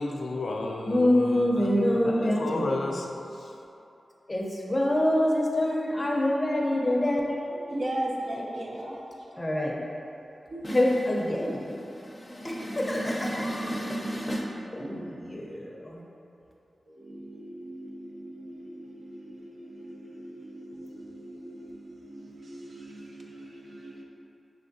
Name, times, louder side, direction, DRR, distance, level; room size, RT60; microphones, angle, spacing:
voice 1, 0.0-3.5, left 2 dB, 70° left, 0.3 m, -33 dB
voice 2, 0.9-2.7 4.3-7.3 9.4-9.8 10.6-16.0, left 1 dB, 20° left, 0.5 m, -26 dB
voice 3, 7.5-8.9 10.5-10.6 14.8-15.1 16.9-24.0, right 1 dB, 60° right, 0.6 m, -38 dB
5.6 x 3.3 x 2.6 m
wide cardioid pair, 105°, 0 cm